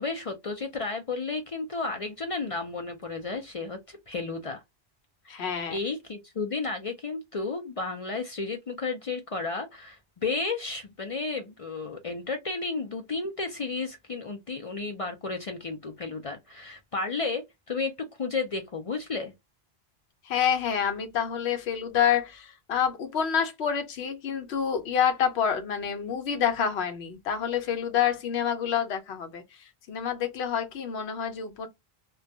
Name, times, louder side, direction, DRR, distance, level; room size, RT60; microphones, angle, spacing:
voice 1, 0.0-4.6 5.2-17.9 18.2-19.3, left 3 dB, 50° left, 0.4 m, -33 dB
voice 2, 5.3-5.8 20.3-29.4 29.9-31.7, left 8 dB, 85° left, 0.9 m, -27 dB
2.3 x 2.2 x 2.6 m
omnidirectional pair, 1.1 m